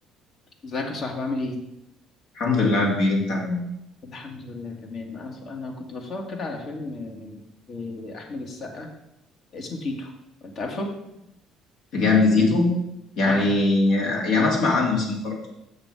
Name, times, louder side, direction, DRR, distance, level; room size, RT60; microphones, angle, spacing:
voice 1, 0.6-1.6 4.0-7.4 7.7-8.9 9.5-10.1 10.4-10.9 13.2-13.5, left 2 dB, 50° left, 2 dB, 1.8 m, -33 dB
voice 2, 2.3-3.6 11.9-12.7 13.2-15.5, left 3 dB, 70° left, -2 dB, 2.7 m, -21 dB
6.9 x 6.6 x 4.9 m, 0.85 s
supercardioid pair, 80°, 0 cm